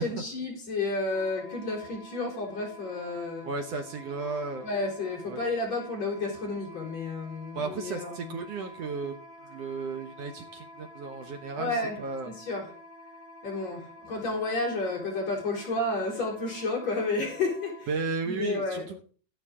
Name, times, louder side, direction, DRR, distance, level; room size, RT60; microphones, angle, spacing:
voice 1, 0.0-3.5 4.6-8.3 11.6-12.0 12.2-12.7 13.4-17.9 18.2-18.9, left 2 dB, 50° left, -2 dB, 4.9 m, -31 dB
Wind instrument woodwind instrument, 1.1-17.9, left 1 dB, 40° right, 7.8 m, -49 dB
voice 2, 3.4-4.7 5.3-5.4 7.5-9.1 9.4-12.3 17.9-19.0, right 4 dB, 70° right, 6 dB, 1.5 m, -34 dB
13.0 x 11.5 x 3.7 m, 0.41 s
omnidirectional pair, 4.1 m